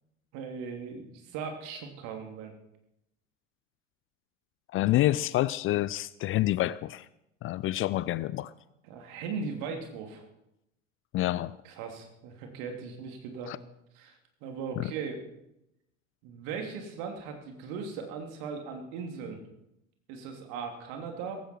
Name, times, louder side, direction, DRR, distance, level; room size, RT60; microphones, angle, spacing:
voice 1, 0.3-2.5 8.8-10.2 11.6-13.5 13.9-14.1 14.4-15.2 16.2-19.4 20.1-21.4, right 5 dB, 55° right, 3 dB, 3.2 m, -38 dB
voice 2, 4.7-7.1 7.4-8.5 11.1-11.5 13.5-13.6 14.8-14.9, left 15 dB, 35° left, 19 dB, 0.5 m, -27 dB
17.5 x 15.5 x 4.6 m, 0.86 s
figure-of-eight pair, 75°, 39 cm